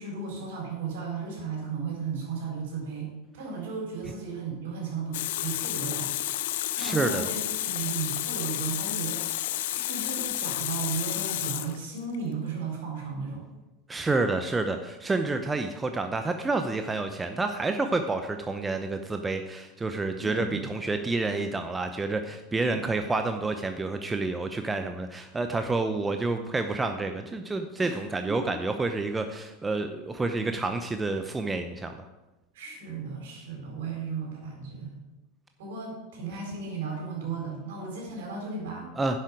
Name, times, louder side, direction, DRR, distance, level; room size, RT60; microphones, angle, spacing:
voice 1, 0.0-6.1 6.8-13.4 20.2-20.7 27.8-28.0 28.4-28.5 32.5-35.0 35.6-38.9, right 5 dB, 65° right, -1 dB, 4.1 m, -35 dB
Water tap faucet, 5.1-12.2, left 14 dB, 60° left, 0.5 m, -31 dB
voice 2, 6.8-7.3 13.9-31.9 39.0-39.2, right 3 dB, 15° right, 6 dB, 0.7 m, -29 dB
11.0 x 7.7 x 4.9 m, 1.1 s
figure-of-eight pair, 80°, 0 cm